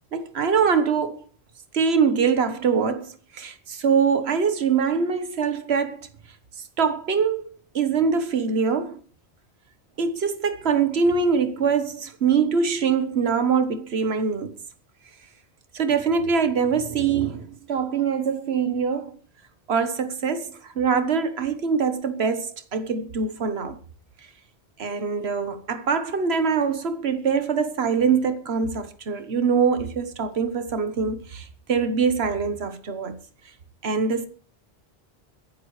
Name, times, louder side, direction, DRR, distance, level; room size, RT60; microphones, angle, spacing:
voice 1, 0.1-1.2 1.7-6.0 6.8-9.0 10.0-14.5 15.7-19.1 19.7-23.8 24.8-33.2 33.8-34.3, right 6 dB, 75° right, 1.5 m, -23 dB
23.0 x 11.0 x 3.3 m
omnidirectional pair, 1.1 m